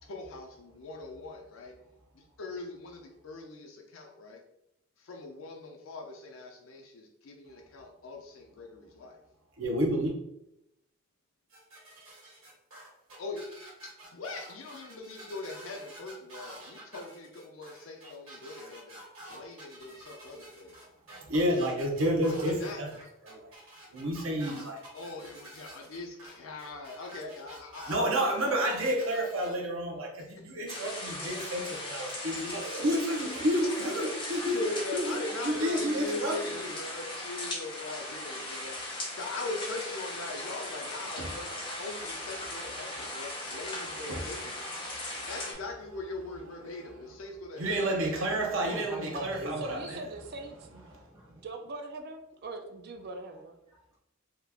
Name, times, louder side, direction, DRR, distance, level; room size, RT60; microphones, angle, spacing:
voice 1, 0.0-1.7 2.1-4.4 5.0-9.2 13.2-13.5 14.1-19.0 19.3-20.8 22.3-22.8 24.9-29.1 29.6-29.7 30.2-30.4 34.5-41.5 41.8-44.7 45.3-48.8, left 3 dB, 75° left, 2 dB, 0.5 m, -41 dB
voice 2, 9.6-10.1 21.2-22.9 23.2-23.5 23.9-24.8 27.9-34.6 34.9-35.0 35.4-36.3 41.2-41.3 44.1-44.2 45.1-45.3 47.6-50.0, equal, 70° right, 1 dB, 0.8 m, -30 dB
sound 1, 11.5-29.5, right 1 dB, 90° right, 1.5 m, -49 dB
sound 2, 30.7-45.5, left 1 dB, 25° left, 0.8 m, -38 dB
voice 3, 48.6-49.9 50.7-51.5 53.7-54.0, left 1 dB, 15° right, -7 dB, 1.1 m, -43 dB
voice 4, 49.1-50.9 51.3-53.5, right 2 dB, 50° right, 6 dB, 0.4 m, -41 dB
2.9 x 2.4 x 3.4 m, 0.81 s
head